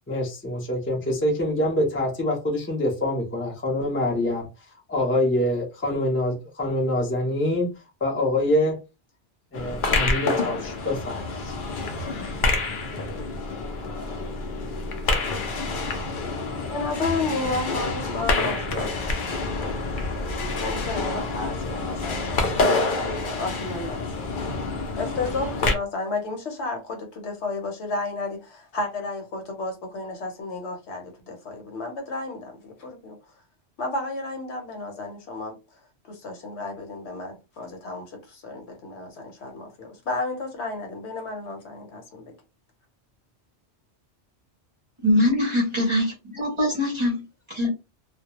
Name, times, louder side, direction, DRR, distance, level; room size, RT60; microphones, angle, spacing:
voice 1, 0.1-4.5 4.9-7.7 8.0-8.8 9.5-11.5, left 1 dB, 15° left, 0.4 m, -25 dB
sound 1, 9.5-25.7, left 3 dB, 55° left, 0.6 m, -27 dB
voice 2, 16.6-19.3 19.6-19.7 20.6-24.3 25.0-33.2 33.8-35.6 36.1-42.3, left 3 dB, 70° left, 1.0 m, -32 dB
voice 3, 45.0-47.2 47.5-47.7, left 1 dB, 30° right, 0.6 m, -22 dB
2.2 x 2.1 x 2.9 m
omnidirectional pair, 1.2 m